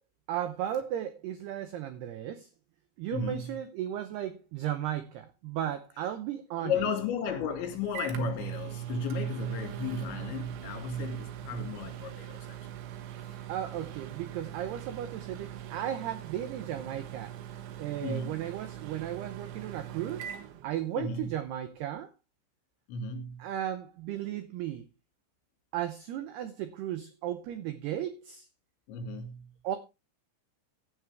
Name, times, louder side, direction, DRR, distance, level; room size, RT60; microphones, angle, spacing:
voice 1, 0.3-2.5 3.0-6.7 13.5-17.3 17.8-20.3 20.6-22.1 23.4-24.9 25.7-28.5 29.6-29.8, right 11 dB, 90° right, 2.3 m, -35 dB
voice 2, 3.1-3.6 6.6-12.6 18.0-18.4 20.9-21.3 22.9-23.4 28.9-29.5, left 4 dB, 65° left, 4.5 m, -34 dB
Microwave oven, 7.3-21.3, right 11 dB, 70° right, 3.4 m, -42 dB
16.0 x 9.4 x 3.4 m
omnidirectional pair, 5.9 m